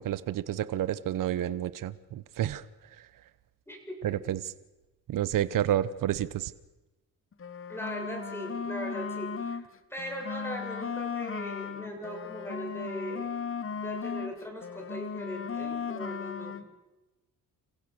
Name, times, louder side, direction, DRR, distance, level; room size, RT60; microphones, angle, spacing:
voice 1, 0.0-2.6 4.0-4.4 5.1-6.5, right 11 dB, 70° right, 16 dB, 1.0 m, -30 dB
voice 2, 3.7-4.3 7.7-13.3 13.7-16.6, equal, 5° left, 2 dB, 7.4 m, -39 dB
sound 1, 7.3-9.7 10.0-14.3 14.6-16.6, left 6 dB, 40° left, 1.3 m, -36 dB
28.0 x 16.0 x 6.4 m, 1.1 s
cardioid pair, 75°, 34 cm